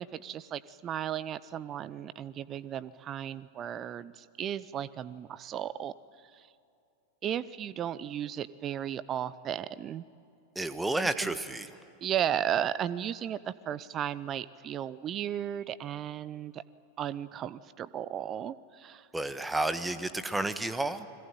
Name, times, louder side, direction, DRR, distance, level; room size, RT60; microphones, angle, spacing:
voice 1, 0.0-5.9 6.3-6.5 7.2-10.0 11.0-11.4 12.0-16.6 17.0-19.1, right 10 dB, 30° right, 19 dB, 0.8 m, -35 dB
voice 2, 10.5-11.7 19.1-21.1, right 2 dB, 5° right, 13 dB, 1.3 m, -31 dB
29.5 x 21.5 x 9.1 m, 2.6 s
figure-of-eight pair, 90°, 0 cm